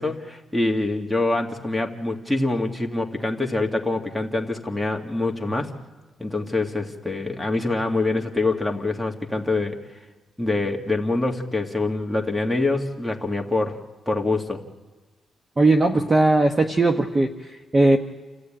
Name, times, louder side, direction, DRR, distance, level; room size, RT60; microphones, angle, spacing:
voice 1, 0.0-5.8 6.2-9.8 10.4-14.6, left 2 dB, ahead, 0 dB, 2.2 m, -25 dB
voice 2, 15.6-18.0, right 2 dB, 25° right, 5 dB, 1.0 m, -19 dB
28.5 x 15.0 x 8.9 m, 1.3 s
cardioid pair, 115°, 0 cm